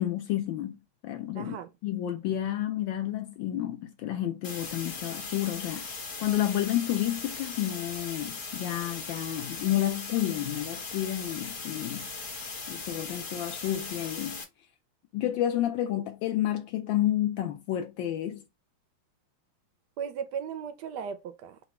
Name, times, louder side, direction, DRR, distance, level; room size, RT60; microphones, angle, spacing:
voice 1, 0.0-1.6 1.8-5.8 6.2-12.1 12.7-14.4 15.1-18.4, left 12 dB, 75° left, 1.2 m, -30 dB
voice 2, 1.4-1.7 20.0-21.7, right 7 dB, 75° right, 1.0 m, -36 dB
sound 1, 4.4-14.4, left 4 dB, 45° left, 1.3 m, -39 dB
3.9 x 2.1 x 4.1 m
omnidirectional pair, 2.2 m